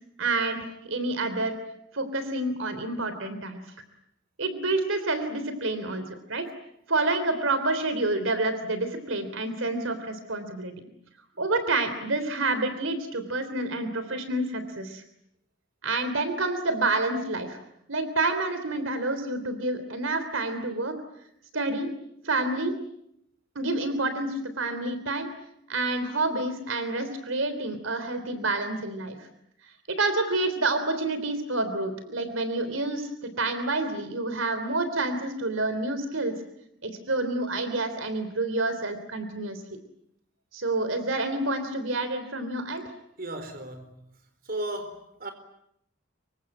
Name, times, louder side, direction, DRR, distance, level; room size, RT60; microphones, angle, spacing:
voice 1, 0.2-1.6 1.9-3.6 4.4-6.5 6.9-10.7 11.4-15.0 15.8-17.6 17.9-21.0 21.5-21.9 22.2-22.7 23.6-25.3 25.7-29.2 29.9-36.3 36.8-39.6 40.5-42.8, right 2 dB, 80° right, 3.5 m, -28 dB
voice 2, 43.2-44.1 44.4-45.3, right 1 dB, 45° right, 4.3 m, -35 dB
26.5 x 24.5 x 9.0 m
head